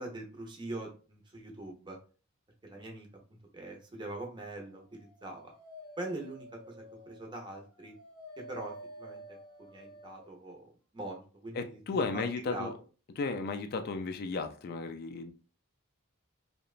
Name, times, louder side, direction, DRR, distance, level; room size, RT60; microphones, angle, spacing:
voice 1, 0.0-2.0 2.6-3.1 3.5-5.5 6.0-6.7 7.1-7.9 8.4-9.2 9.6-10.6 10.9-11.8 12.1-12.7, right 2 dB, 20° right, 0.6 m, -42 dB
Dog, 4.8-10.4, equal, 90° left, 0.6 m, -51 dB
voice 2, 11.5-12.7 13.2-15.3, left 4 dB, 45° left, 0.3 m, -34 dB
2.8 x 2.1 x 2.4 m
head